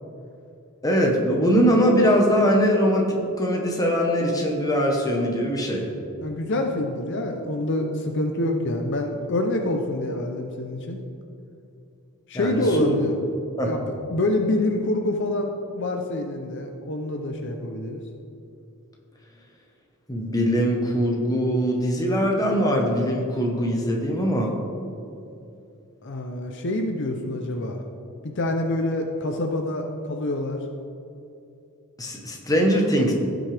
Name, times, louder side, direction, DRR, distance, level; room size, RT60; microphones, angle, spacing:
voice 1, 0.8-5.8 12.3-12.9 13.6-13.7 20.1-24.5 32.0-33.1, equal, 15° left, 0 dB, 1.1 m, -21 dB
voice 2, 6.2-11.0 12.3-13.2 13.6-18.0 26.0-27.8 28.2-30.6, left 1 dB, 55° left, 3 dB, 0.7 m, -26 dB
16.0 x 6.2 x 3.4 m, 2.7 s
head